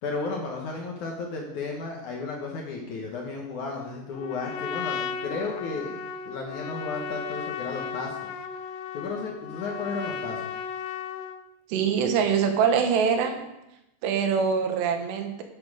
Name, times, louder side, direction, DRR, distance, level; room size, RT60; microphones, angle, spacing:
voice 1, 0.0-8.2 8.9-10.4, left 3 dB, 65° left, 0 dB, 2.1 m, -33 dB
Trumpet, 4.1-11.5, left 6 dB, 85° left, 1.9 m, -35 dB
voice 2, 11.7-13.4 14.0-15.4, right 6 dB, 85° right, 6 dB, 3.3 m, -24 dB
11.0 x 8.8 x 4.9 m, 0.91 s
omnidirectional pair, 4.8 m